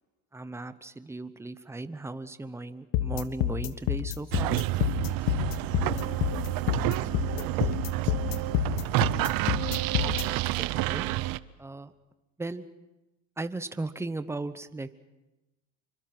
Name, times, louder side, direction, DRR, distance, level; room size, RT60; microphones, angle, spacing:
voice 1, 0.3-4.6 10.0-11.1 11.6-11.9 12.4-12.7 13.4-15.0, right 2 dB, 5° right, 12 dB, 0.9 m, -37 dB
sound 1, 2.9-10.2, left 12 dB, 65° left, 1.6 m, -28 dB
sound 2, 4.3-11.4, right 18 dB, 60° right, 0.8 m, -29 dB
voice 2, 5.7-7.6 8.2-8.7, left 3 dB, 35° left, 0 dB, 4.6 m, -47 dB
27.0 x 24.0 x 6.0 m, 1.0 s
cardioid pair, 135°, 39 cm